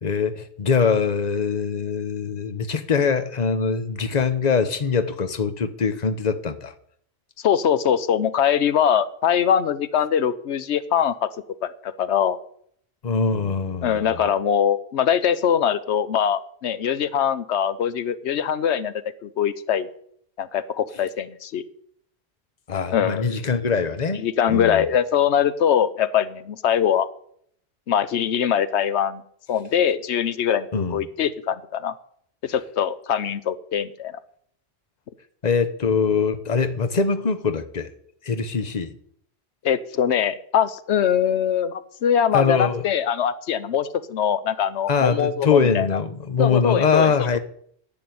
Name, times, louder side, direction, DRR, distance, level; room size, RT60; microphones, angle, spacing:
voice 1, 0.0-6.7 13.0-14.2 22.7-24.8 30.7-31.0 35.4-37.9 38.2-38.9 42.3-42.8 44.9-47.4, left 5 dB, 40° left, 1.1 m, -23 dB
voice 2, 7.4-11.3 11.6-12.4 13.8-18.9 19.2-19.9 20.4-21.6 22.9-23.4 24.1-27.1 27.9-29.2 29.5-31.9 32.4-34.2 39.6-46.0 46.4-47.1, left 8 dB, 90° left, 1.0 m, -22 dB
11.0 x 7.8 x 9.3 m
omnidirectional pair, 1.1 m